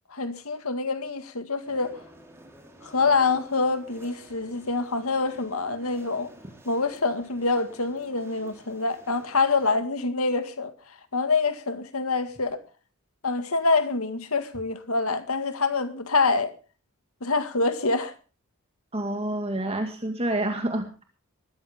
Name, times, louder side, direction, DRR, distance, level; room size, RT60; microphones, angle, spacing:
voice 1, 0.1-2.0 2.8-6.3 6.7-10.7 11.1-12.6 13.2-16.5 17.2-18.1, left 3 dB, 80° left, 2.0 m, -26 dB
sound 1, 1.6-9.7, right 1 dB, 10° right, 4.6 m, -51 dB
voice 2, 18.9-21.0, right 1 dB, 25° right, 2.2 m, -28 dB
20.5 x 14.5 x 3.6 m
head